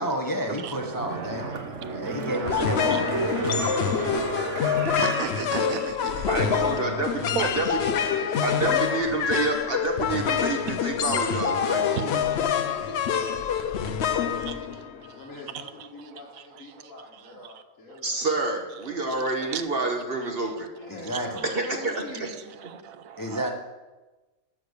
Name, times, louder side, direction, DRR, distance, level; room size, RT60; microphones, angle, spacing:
voice 1, 0.0-1.6 1.9-3.1 20.9-21.4 23.2-23.5, equal, 20° left, 3 dB, 0.8 m, -30 dB
sound 1, 0.7-6.2 6.6-6.7, right 3 dB, 65° right, 1.4 m, -32 dB
sound 2, 2.5-15.2, left 8 dB, 60° left, 0.8 m, -26 dB
voice 2, 3.2-4.1 6.3-9.2 11.7-18.2 18.9-19.5 20.8-22.3, left 3 dB, 75° left, -4 dB, 1.9 m, -42 dB
voice 3, 4.7-6.3 7.4-7.9 14.5-14.6 15.1-15.2 17.4-17.5 17.9-18.0 19.5-19.6 22.2-22.3 22.7-23.5, right 8 dB, 90° right, 11 dB, 1.2 m, -34 dB
voice 4, 6.3-7.1 7.4-7.7 8.4-12.1 18.0-20.7 21.5-22.0, right 3 dB, 45° right, 3 dB, 1.3 m, -28 dB
12.0 x 6.5 x 6.5 m, 1.2 s
omnidirectional pair, 1.4 m